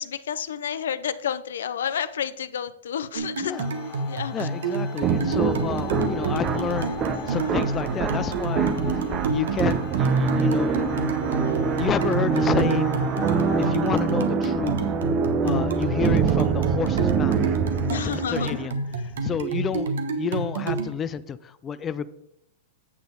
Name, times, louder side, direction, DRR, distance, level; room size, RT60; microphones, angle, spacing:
voice 1, 0.0-3.5 4.1-4.5 17.9-18.5, left 8 dB, 90° left, 13 dB, 0.5 m, -30 dB
sound 1, 3.2-20.9, right 3 dB, 85° right, 1.2 m, -29 dB
sound 2, 3.5-13.7, left 9 dB, 35° left, 2.0 m, -39 dB
voice 2, 4.3-10.8 11.8-12.9 13.6-14.9 15.4-17.5 17.9-22.1, left 7 dB, 20° left, 13 dB, 0.3 m, -30 dB
sound 3, 5.0-18.7, right 6 dB, 25° right, 0.6 m, -25 dB
8.6 x 7.0 x 4.0 m, 0.76 s
supercardioid pair, 150°, 0 cm